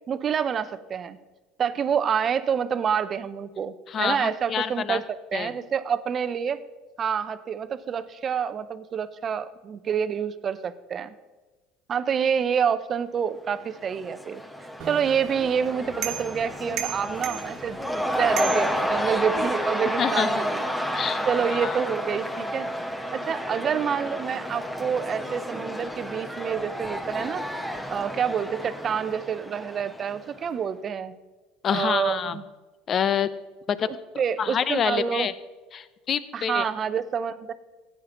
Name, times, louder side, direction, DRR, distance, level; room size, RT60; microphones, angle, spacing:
voice 1, 0.1-1.2 1.6-5.0 5.3-6.6 7.0-11.1 11.9-14.4 14.9-20.6 21.3-22.7 23.1-27.5 27.9-31.2 31.7-32.4 33.9-35.3 36.3-37.5, right 7 dB, 40° right, 13 dB, 0.7 m, -27 dB
voice 2, 3.9-5.0 5.3-5.5 20.0-20.3 20.9-21.8 31.6-32.4 32.9-33.3 33.7-33.9 34.4-35.3 35.7-36.6, left 8 dB, 40° left, 15 dB, 0.7 m, -27 dB
Cheering / Crowd, 13.6-30.4, equal, 5° left, 1.3 m, -31 dB
sound 1, 14.8-19.5, right 10 dB, 60° right, 1.4 m, -37 dB
15.5 x 9.4 x 3.9 m, 1.3 s
hypercardioid pair, 80°, 0 cm